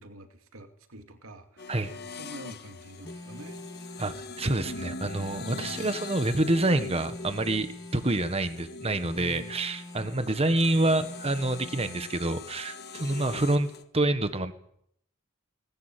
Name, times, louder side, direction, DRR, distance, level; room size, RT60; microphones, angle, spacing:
voice 1, 0.0-1.8 2.1-3.6 5.3-5.9 9.1-9.5, right 1 dB, 80° right, 6 dB, 2.5 m, -45 dB
sound 1, 1.6-13.8, left 3 dB, 50° left, 1.7 m, -42 dB
Telephone, 3.0-4.2 5.0-6.2 7.0-8.2 9.0-10.2 11.0-12.2, left 1 dB, 15° left, 2.5 m, -45 dB
voice 2, 4.0-14.5, right 2 dB, 30° right, 10 dB, 1.4 m, -27 dB
20.0 x 19.0 x 9.1 m, 0.71 s
head